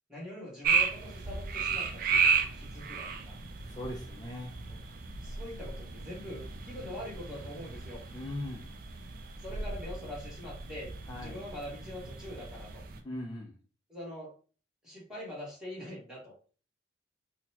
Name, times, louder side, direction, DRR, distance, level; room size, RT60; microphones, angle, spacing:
voice 1, 0.1-3.4 4.7-4.8 5.2-8.0 9.4-12.8 13.9-14.3 14.8-16.3, left 1 dB, 5° right, -5 dB, 1.4 m, -43 dB
sound 1, 0.6-13.0, right 5 dB, 45° right, 0.4 m, -34 dB
voice 2, 3.7-4.5 8.1-8.7 11.1-11.4 13.0-13.6, left 1 dB, 20° left, -2 dB, 0.5 m, -39 dB
4.0 x 2.1 x 2.8 m, 0.39 s
head